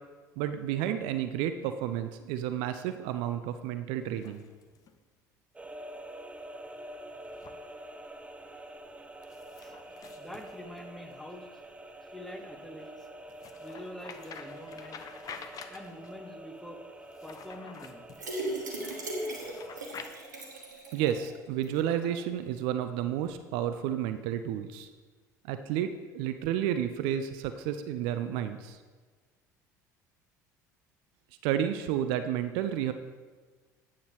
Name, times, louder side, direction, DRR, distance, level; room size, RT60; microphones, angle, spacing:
voice 1, 0.4-4.4 20.9-24.9 25.4-28.8 31.4-32.9, right 10 dB, 60° right, 10 dB, 0.4 m, -31 dB
sound 1, 4.0-5.0 7.2-7.6 9.2-11.2 13.3-16.2 17.0-18.2 19.2-20.1, left 6 dB, 40° left, 0.7 m, -48 dB
sound 2, 5.5-19.9, right 1 dB, 10° right, 0.7 m, -47 dB
voice 2, 10.2-11.5 12.1-13.1 13.6-15.0 15.7-16.8 17.2-18.1 18.8-19.0, equal, 5° left, 4 dB, 1.2 m, -45 dB
sound 3, 18.1-21.3 21.6-21.7 22.0-22.1, right 1 dB, 85° right, 1.2 m, -37 dB
9.3 x 7.2 x 3.1 m, 1.4 s
figure-of-eight pair, 60°, 9 cm